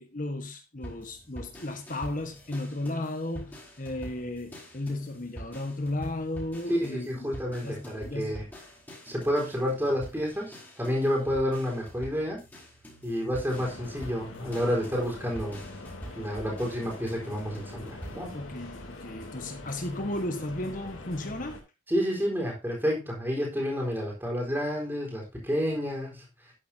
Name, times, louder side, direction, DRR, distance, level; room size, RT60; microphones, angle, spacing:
voice 1, 0.0-7.3 7.6-8.3 18.3-21.6, left 1 dB, 40° left, 1.3 m, -34 dB
sound 1, 0.8-18.3, equal, 10° left, 4.7 m, -46 dB
voice 2, 6.7-8.4 9.1-12.4 13.0-15.6 16.2-18.3 21.9-26.2, equal, 10° right, 4.2 m, -29 dB
sound 2, 13.5-21.6, left 2 dB, 80° left, 3.0 m, -44 dB
11.5 x 9.6 x 2.8 m
head